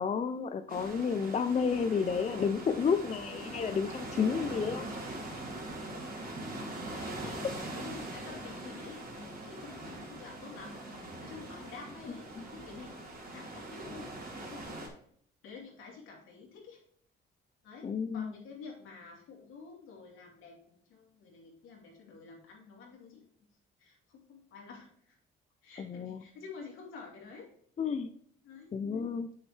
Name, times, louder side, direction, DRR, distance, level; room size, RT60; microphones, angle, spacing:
voice 1, 0.0-4.9 12.4-12.5 17.8-18.3 25.8-26.2 27.8-28.1 28.7-29.3, left 6 dB, 35° left, 9 dB, 0.5 m, -31 dB
sound 1, 0.7-14.9, right 1 dB, 45° right, 2.6 m, -42 dB
voice 2, 5.9-14.9 15.4-16.8 17.6-23.2 23.8-25.2 25.6-27.5 28.4-28.7, left 4 dB, 85° left, -1 dB, 2.7 m, -50 dB
8.2 x 6.5 x 3.3 m, 0.62 s
cardioid pair, 90°, 20 cm